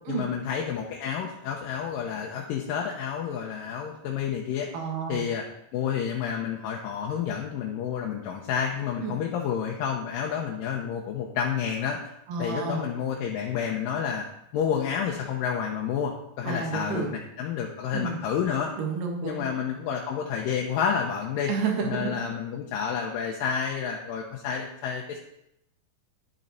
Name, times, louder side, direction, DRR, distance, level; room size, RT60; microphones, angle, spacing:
voice 1, 0.1-4.7 5.1-5.4 5.7-12.0 12.4-14.3 14.5-18.7 19.2-21.5 21.8-25.2, left 7 dB, 75° left, -1 dB, 2.4 m, -30 dB
voice 2, 4.7-5.3 9.0-9.2 12.3-12.9 16.4-17.1 17.9-18.2 18.8-19.4 21.5-22.1, right 5 dB, 70° right, 1 dB, 3.1 m, -30 dB
11.0 x 7.5 x 4.1 m, 0.81 s
omnidirectional pair, 4.2 m